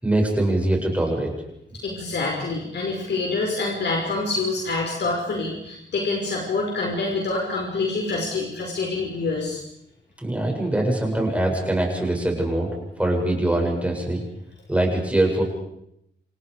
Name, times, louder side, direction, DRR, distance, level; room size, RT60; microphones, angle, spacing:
voice 1, 0.0-1.3 10.2-12.7 13.0-14.2 14.7-15.4, right 1 dB, 5° right, 0 dB, 7.3 m, -22 dB
voice 2, 1.8-9.6, left 3 dB, 70° left, -1 dB, 5.8 m, -26 dB
29.0 x 28.5 x 5.1 m, 0.76 s
wide cardioid pair, 150°, 19 cm